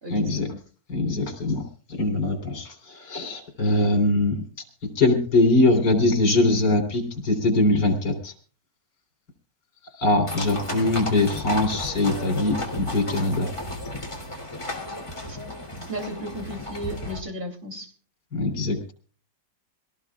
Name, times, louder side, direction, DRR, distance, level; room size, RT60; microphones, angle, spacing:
voice 1, 0.1-0.6 0.9-1.6 1.9-4.4 5.0-8.3 10.0-13.5 18.3-18.9, left 2 dB, 70° left, 5 dB, 4.3 m, -22 dB
sound 1, 10.3-17.2, left 1 dB, 15° left, 3.3 m, -33 dB
voice 2, 15.9-17.9, equal, 30° right, 4 dB, 3.4 m, -34 dB
25.0 x 18.0 x 2.4 m, 0.38 s
omnidirectional pair, 1.9 m